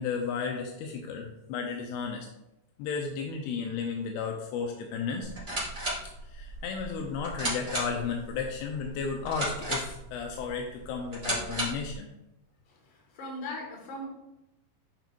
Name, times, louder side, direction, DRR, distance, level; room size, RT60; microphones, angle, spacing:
voice 1, 0.0-2.3 2.8-5.3 6.2-12.1, left 5 dB, 85° left, 2 dB, 2.7 m, -33 dB
sound 1, 5.2-11.9, right 1 dB, 20° right, 1.6 m, -35 dB
voice 2, 12.9-14.1, left 1 dB, 60° left, -1 dB, 3.1 m, -39 dB
8.9 x 5.2 x 2.5 m, 0.88 s
omnidirectional pair, 4.6 m